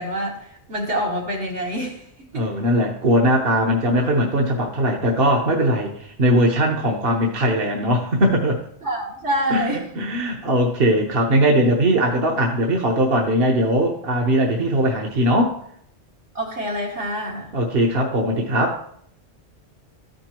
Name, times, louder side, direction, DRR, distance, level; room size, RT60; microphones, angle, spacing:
voice 1, 0.0-2.0 2.3-2.4 8.8-9.8 16.3-17.5, right 1 dB, 85° right, -4 dB, 2.5 m, -26 dB
voice 2, 2.3-8.6 9.5-15.6 17.5-18.8, equal, 60° right, 0 dB, 1.2 m, -20 dB
13.5 x 5.2 x 3.0 m, 0.66 s
omnidirectional pair, 1.1 m